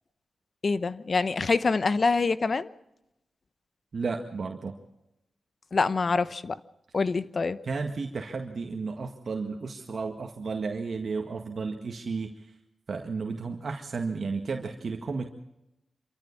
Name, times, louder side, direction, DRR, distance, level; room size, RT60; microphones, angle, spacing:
voice 1, 0.6-2.7 5.7-6.6 6.9-7.6, left 4 dB, 50° left, 0.9 m, -25 dB
voice 2, 3.9-4.8 7.6-12.3 12.9-15.3, right 4 dB, 60° right, 1.8 m, -33 dB
26.5 x 14.0 x 7.2 m
cardioid pair, 70°, 0 cm